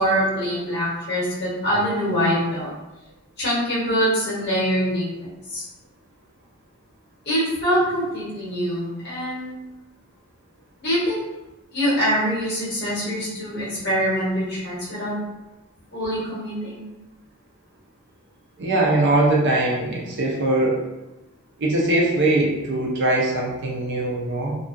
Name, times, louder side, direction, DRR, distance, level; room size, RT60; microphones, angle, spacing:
voice 1, 0.0-2.7 3.4-5.6 7.3-9.5 10.8-11.2 11.7-15.1 15.9-16.9, equal, 45° left, -7 dB, 1.0 m, -24 dB
voice 2, 18.6-20.8 21.6-24.5, right 2 dB, 50° right, -2 dB, 0.5 m, -21 dB
2.4 x 2.2 x 2.5 m, 1.0 s
head